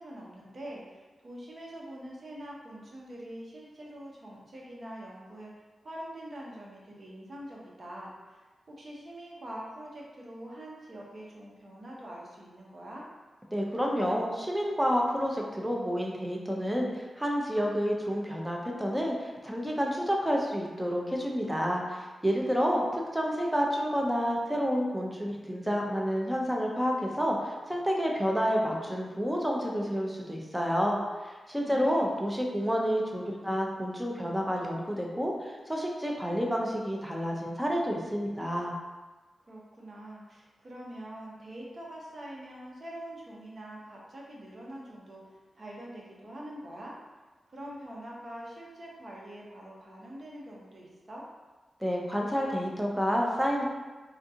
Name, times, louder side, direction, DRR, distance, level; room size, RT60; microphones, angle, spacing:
voice 1, 0.0-13.0 31.7-32.1 39.4-46.9 47.5-51.2, right 1 dB, 50° right, -3 dB, 0.8 m, -44 dB
voice 2, 13.5-38.7 51.8-53.6, equal, 10° right, -1 dB, 0.6 m, -29 dB
3.6 x 2.3 x 2.7 m, 1.3 s
cardioid pair, 60°, 0 cm